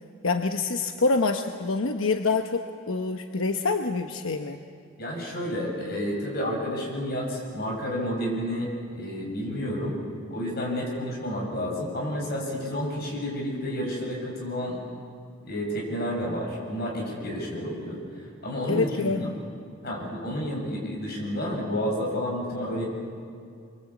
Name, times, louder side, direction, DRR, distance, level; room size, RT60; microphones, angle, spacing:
voice 1, 0.2-4.6 18.7-19.4, left 3 dB, 85° left, 6 dB, 1.0 m, -26 dB
voice 2, 5.0-10.0 10.3-14.8 15.4-18.0 18.4-19.3 19.8-22.8, equal, 50° left, -1 dB, 7.3 m, -30 dB
27.0 x 23.5 x 8.5 m, 2.4 s
head